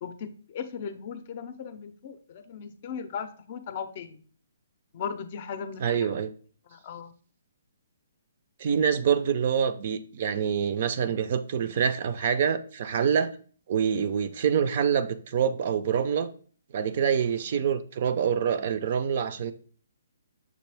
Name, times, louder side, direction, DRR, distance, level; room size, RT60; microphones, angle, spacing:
voice 1, 0.0-4.2 4.9-6.1 6.7-7.1, left 7 dB, 40° left, 0.5 m, -37 dB
voice 2, 5.8-6.3 8.6-13.3 13.7-16.3 16.7-19.5, right 7 dB, 50° right, 0.4 m, -26 dB
6.1 x 2.5 x 3.3 m
hypercardioid pair, 150°, 0 cm